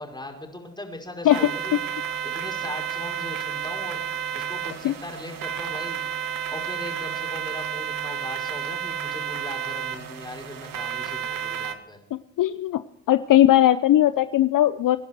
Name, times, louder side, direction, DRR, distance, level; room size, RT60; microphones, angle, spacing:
voice 1, 0.0-1.8 2.2-4.0 4.3-6.0 6.5-12.0, left 1 dB, 10° left, 2 dB, 5.5 m, -39 dB
sound 1, 1.3-11.8, right 9 dB, 60° right, 2.2 m, -31 dB
voice 2, 12.4-12.8 13.1-15.0, left 13 dB, 55° left, 13 dB, 0.8 m, -18 dB
25.0 x 10.5 x 4.6 m, 0.76 s
supercardioid pair, 60°, 38 cm